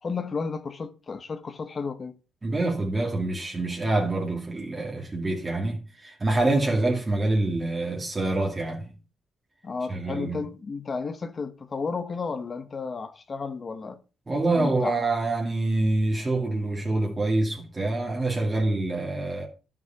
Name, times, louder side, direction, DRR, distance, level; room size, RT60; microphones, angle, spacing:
voice 1, 0.0-2.1 9.6-14.0 14.5-15.0, left 4 dB, 35° left, 1.0 m, -33 dB
voice 2, 2.4-8.9 9.9-10.5 14.3-19.5, right 2 dB, 25° right, 2.3 m, -26 dB
10.5 x 6.2 x 5.7 m
cardioid pair, 90°, 0 cm